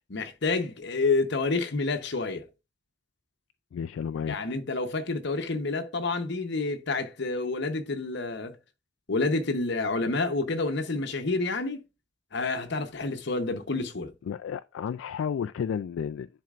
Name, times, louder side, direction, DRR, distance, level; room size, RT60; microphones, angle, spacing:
voice 1, 0.1-2.4 4.3-8.6 9.1-11.8 12.3-14.1, left 3 dB, 65° left, 0.9 m, -29 dB
voice 2, 3.7-4.4 14.3-16.3, left 7 dB, 85° left, 0.3 m, -32 dB
10.5 x 4.5 x 2.5 m
head